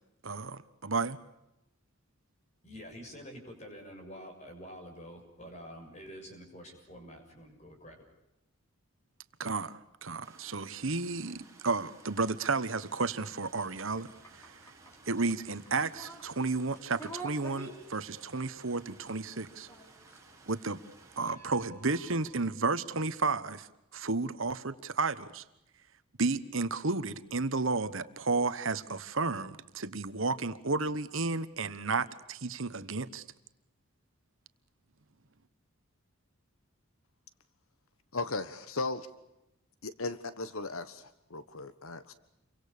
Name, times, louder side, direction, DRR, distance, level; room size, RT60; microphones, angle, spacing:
voice 1, 0.2-1.2 9.4-14.6 15.1-19.7 20.5-20.8 21.2-25.4 26.2-33.2, right 3 dB, 65° right, 12 dB, 1.3 m, -32 dB
voice 2, 2.6-8.0, equal, 30° left, 4 dB, 6.7 m, -47 dB
sound 1, 10.2-21.3, right 3 dB, 15° right, 6.5 m, -58 dB
sound 2, 13.4-22.5, right 2 dB, 10° left, 5.8 m, -51 dB
voice 3, 38.1-39.1 39.8-42.1, left 3 dB, 75° left, 13 dB, 1.4 m, -37 dB
29.5 x 24.5 x 6.8 m, 0.87 s
head